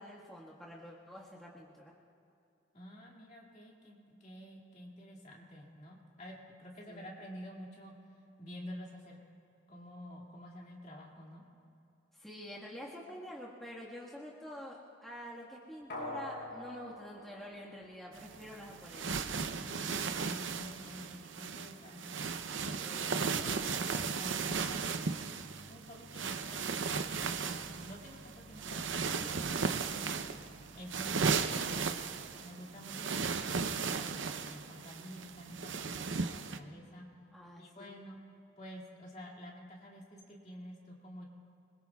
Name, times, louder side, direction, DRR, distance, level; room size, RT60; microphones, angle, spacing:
voice 1, 0.0-1.9 6.8-7.1 12.1-19.2 22.8-23.2 37.3-37.9, equal, ahead, -7 dB, 1.6 m, -47 dB
voice 2, 2.7-8.0 8.4-9.2 9.7-11.4 19.6-22.2 22.6-25.3 25.7-27.1 27.4-30.3 30.7-32.0 32.4-37.1 37.6-38.2 38.6-41.2, equal, 35° left, -2 dB, 2.4 m, -49 dB
sound 1, 15.9-18.5 18.8-18.9, left 1 dB, 55° left, 4.1 m, -45 dB
sound 2, 18.1-36.6, right 5 dB, 75° right, 0.7 m, -36 dB
26.0 x 22.0 x 2.4 m, 2.6 s
head